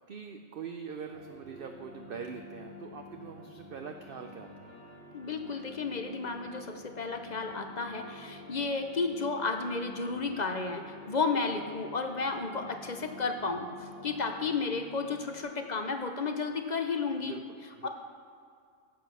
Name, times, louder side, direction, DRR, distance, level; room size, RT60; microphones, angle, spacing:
voice 1, 0.1-4.7 17.1-17.9, right 6 dB, 55° right, 5 dB, 0.7 m, -43 dB
sound 1, 1.1-15.4, left 1 dB, 80° right, 3.9 m, -49 dB
voice 2, 5.1-17.3 17.8-17.9, left 4 dB, 45° left, 6 dB, 0.7 m, -33 dB
10.0 x 7.8 x 6.2 m, 2.3 s
omnidirectional pair, 1.4 m